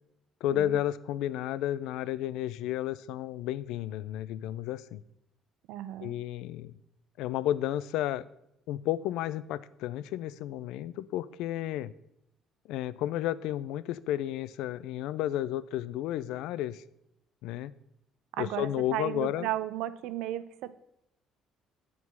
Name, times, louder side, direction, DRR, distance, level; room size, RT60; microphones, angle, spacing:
voice 1, 0.4-5.0 6.0-6.7 7.2-8.2 8.7-11.9 12.7-16.8 17.4-17.7 18.4-19.5, left 13 dB, 85° left, 18 dB, 0.3 m, -32 dB
voice 2, 5.7-6.1 18.3-20.7, right 13 dB, 85° right, 14 dB, 0.5 m, -34 dB
8.3 x 4.7 x 5.5 m, 0.82 s
cardioid pair, 155°, 0 cm